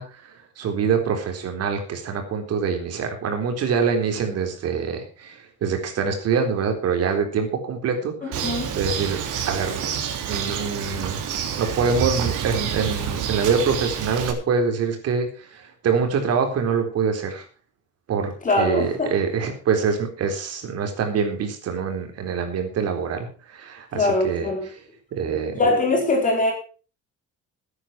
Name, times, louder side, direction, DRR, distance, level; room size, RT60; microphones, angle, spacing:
voice 1, 0.0-9.2 9.4-9.8 10.3-11.2 11.5-17.4 18.1-24.5 25.1-25.6, right 6 dB, 55° right, 5 dB, 3.9 m, -25 dB
voice 2, 8.2-8.7 18.4-19.1 23.9-24.7 25.5-26.5, left 2 dB, 25° left, 1 dB, 4.1 m, -22 dB
Bird, 8.3-14.3, right 8 dB, 85° right, 3.4 m, -28 dB
14.5 x 9.8 x 5.9 m, 0.38 s
cardioid pair, 180°, 30 cm